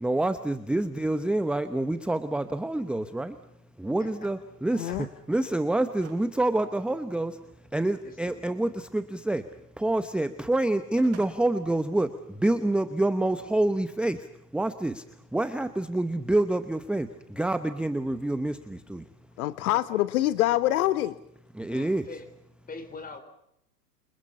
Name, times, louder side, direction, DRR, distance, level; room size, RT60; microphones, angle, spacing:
voice 1, 0.0-3.4 3.8-7.4 7.7-19.0 21.5-22.1, right 1 dB, ahead, 0.9 m, -27 dB
voice 2, 4.7-5.1 8.0-8.4 19.7-20.0 21.7-22.3 22.7-23.2, left 4 dB, 15° left, 4.5 m, -43 dB
sound 1, 6.0-6.3 6.7-6.8 10.6-11.3, right 7 dB, 30° right, 7.6 m, -48 dB
voice 3, 19.4-21.1, left 15 dB, 60° left, 1.2 m, -25 dB
29.0 x 25.5 x 5.6 m
hypercardioid pair, 115°, 49 cm